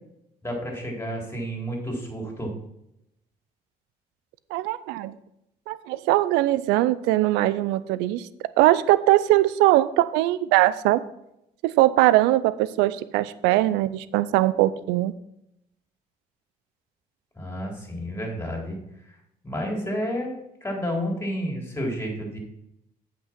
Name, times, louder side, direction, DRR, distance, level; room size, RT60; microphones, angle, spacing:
voice 1, 0.4-2.5 17.3-18.8 19.1-19.2 19.4-20.3 20.6-22.4, equal, 15° left, 0 dB, 3.7 m, -30 dB
voice 2, 4.5-5.1 5.7-8.3 8.6-11.0 11.6-15.1, right 16 dB, 90° right, 16 dB, 0.4 m, -21 dB
8.1 x 6.0 x 6.1 m, 0.82 s
supercardioid pair, 70°, 17 cm